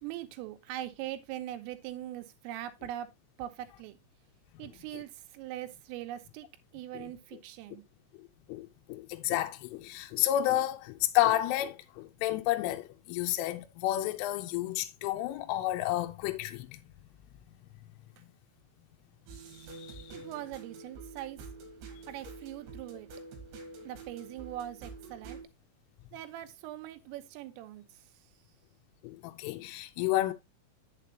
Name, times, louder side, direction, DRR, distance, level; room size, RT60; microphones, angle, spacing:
voice 1, 0.0-3.1 3.4-4.0 4.6-6.5 6.7-7.8 20.1-21.4 22.1-23.1 23.9-25.4 26.1-28.2, right 13 dB, 85° right, 3.4 m, -41 dB
voice 2, 8.5-16.8 19.6-20.3 29.0-30.3, left 14 dB, 80° left, 3.1 m, -31 dB
sound 1, 19.3-25.4, right 3 dB, 65° right, 3.7 m, -47 dB
8.5 x 7.5 x 2.8 m
omnidirectional pair, 5.8 m